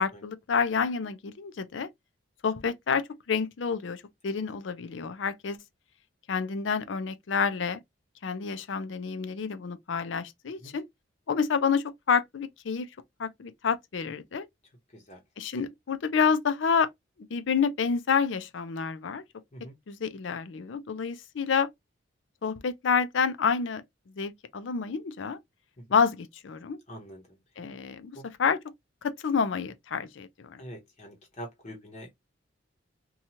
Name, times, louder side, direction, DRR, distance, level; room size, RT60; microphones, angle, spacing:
voice 1, 0.0-1.9 2.4-5.6 6.3-7.8 8.2-10.8 11.3-12.9 13.2-14.5 15.4-16.9 17.3-19.2 19.9-21.7 22.4-23.8 24.2-25.4 25.9-26.8 27.6-28.6 29.0-30.6, left 6 dB, 75° left, 0.5 m, -28 dB
voice 2, 26.9-27.4 28.1-28.2 30.6-32.1, equal, 35° left, 0.8 m, -44 dB
2.8 x 2.3 x 2.7 m
head